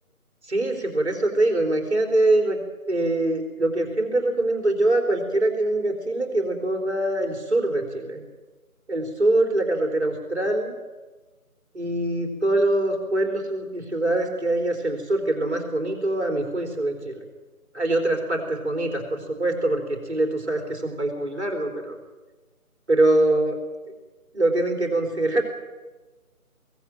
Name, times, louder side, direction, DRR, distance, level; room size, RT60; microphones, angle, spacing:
voice 1, 0.4-2.6 2.9-8.2 8.9-10.8 11.7-17.2 17.7-22.0 22.9-23.6 24.3-25.4, right 2 dB, 45° right, 3 dB, 3.7 m, -23 dB
23.0 x 17.5 x 8.9 m, 1.3 s
figure-of-eight pair, 165°, 45 cm